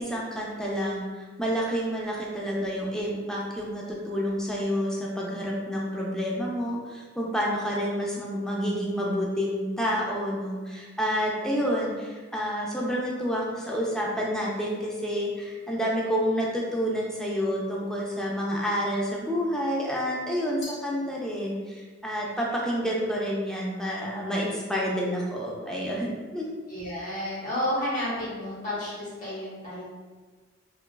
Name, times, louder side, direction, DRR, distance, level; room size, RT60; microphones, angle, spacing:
voice 1, 0.0-26.5, equal, 5° left, -4 dB, 0.4 m, -29 dB
Glass, 20.6-21.8, left 2 dB, 70° left, 0.5 m, -46 dB
voice 2, 26.7-29.8, left 1 dB, 40° left, -7 dB, 0.9 m, -31 dB
2.9 x 2.3 x 2.2 m, 1.4 s
head